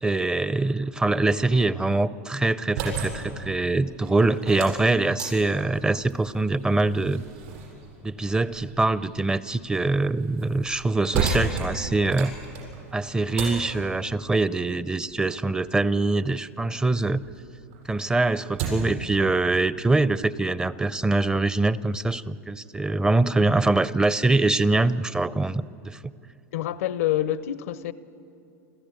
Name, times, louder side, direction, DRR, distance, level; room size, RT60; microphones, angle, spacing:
voice 1, 0.0-7.2 8.0-12.3 12.9-17.2 17.9-26.1, right 2 dB, 10° right, 0.5 m, -24 dB
sound 1, 2.5-17.2 17.6-19.0, right 4 dB, 70° right, 7.4 m, -35 dB
voice 2, 26.5-27.9, left 12 dB, 80° left, 0.7 m, -26 dB
29.5 x 13.5 x 8.4 m
hypercardioid pair, 110°, 8 cm